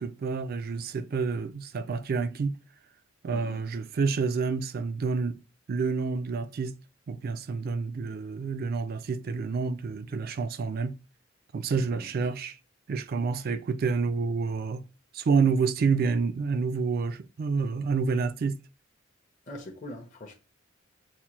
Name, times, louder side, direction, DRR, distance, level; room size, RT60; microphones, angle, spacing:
voice 1, 0.0-2.6 3.2-5.4 5.7-6.7 7.1-10.9 11.5-12.6 12.9-14.8 15.1-18.6, right 5 dB, 45° right, 0.3 m, -28 dB
voice 2, 11.7-12.3 19.5-20.3, left 1 dB, 40° left, 0.6 m, -43 dB
5.6 x 2.2 x 3.0 m
head